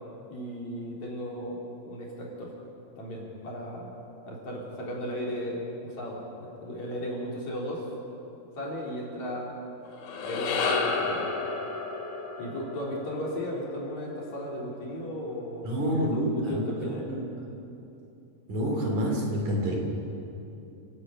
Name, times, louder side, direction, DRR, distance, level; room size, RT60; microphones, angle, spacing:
voice 1, 0.3-2.5 3.0-3.9 4.2-7.9 8.6-9.6 10.2-11.2 12.4-17.1, equal, 50° left, -3 dB, 4.9 m, -35 dB
sound 1, 9.9-14.3, left 4 dB, 70° left, 3.5 m, -31 dB
voice 2, 15.6-17.2 18.5-19.8, equal, 50° right, 0 dB, 4.2 m, -28 dB
29.5 x 12.5 x 8.8 m, 2.8 s
omnidirectional pair, 4.5 m